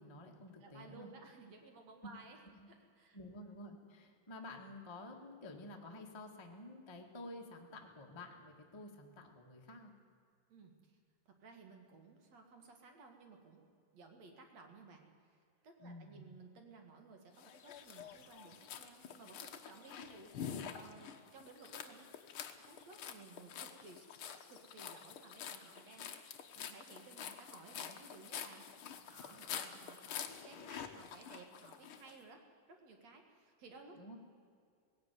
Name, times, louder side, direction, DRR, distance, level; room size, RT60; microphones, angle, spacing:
voice 1, 0.0-1.1 2.6-2.7 3.1-9.9 15.8-16.3 33.9-34.2, left 2 dB, 20° left, 1 dB, 0.6 m, -51 dB
voice 2, 0.6-2.4 2.7-3.2 10.5-11.0 11.3-13.7 13.9-15.0 15.3-22.1 22.6-28.7 29.1-32.4 32.7-34.2, right 4 dB, 55° right, 4 dB, 2.8 m, -57 dB
sound 1, 17.4-32.1, left 8 dB, 75° left, 1.2 m, -48 dB
18.0 x 16.0 x 9.4 m, 2.2 s
omnidirectional pair, 4.1 m